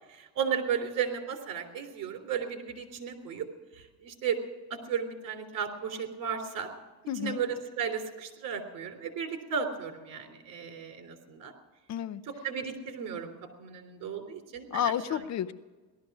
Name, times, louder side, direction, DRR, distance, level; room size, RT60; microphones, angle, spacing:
voice 1, 0.0-3.4 3.7-4.4 4.7-6.7 7.1-11.5 12.4-15.2, right 7 dB, 60° right, 5 dB, 3.4 m, -34 dB
voice 2, 7.1-7.4 11.9-12.2 14.7-15.5, left 9 dB, 50° left, 13 dB, 0.8 m, -31 dB
18.5 x 13.0 x 6.1 m, 1.3 s
cardioid pair, 125°, 36 cm